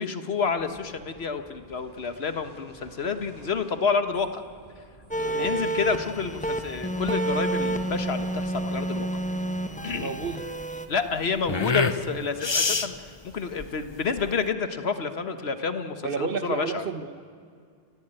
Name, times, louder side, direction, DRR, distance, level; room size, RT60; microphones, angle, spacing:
voice 1, 0.0-4.4 4.8-4.9 5.1-9.1 9.8-10.2 10.9-16.8, left 5 dB, 75° left, 9 dB, 1.6 m, -29 dB
sound 1, 0.6-10.0, right 2 dB, 35° right, 2.3 m, -49 dB
sound 2, 5.1-10.9, right 1 dB, 10° left, 1.0 m, -29 dB
voice 2, 5.2-5.7 10.0-10.4 16.0-17.2, right 5 dB, 60° right, 11 dB, 1.2 m, -31 dB
sound 3, 6.4-14.5, left 4 dB, 30° left, 0.7 m, -30 dB
30.0 x 16.0 x 9.0 m, 2.2 s
omnidirectional pair, 1.1 m